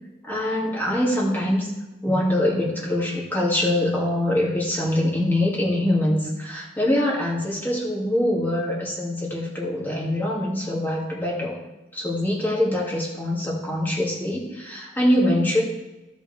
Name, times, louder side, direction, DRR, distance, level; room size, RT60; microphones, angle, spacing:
voice 1, 0.2-1.7 2.0-11.6 11.9-15.6, left 1 dB, 10° left, -4 dB, 2.3 m, -24 dB
16.0 x 5.4 x 3.3 m, 1.1 s
head